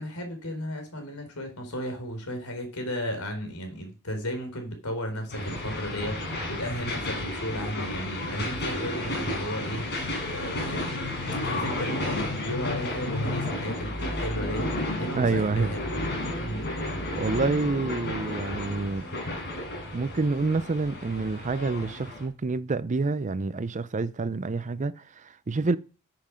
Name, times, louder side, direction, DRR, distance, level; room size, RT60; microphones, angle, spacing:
voice 1, 0.0-10.9 11.4-15.9 16.4-16.6, equal, 70° left, 3.8 m, -34 dB
sound 1, 5.3-22.2, left 1 dB, 50° left, 4.4 m, -32 dB
voice 2, 15.1-15.7 17.2-19.1 19.9-25.8, right 3 dB, 35° right, 0.5 m, -28 dB
8.9 x 7.7 x 6.2 m
head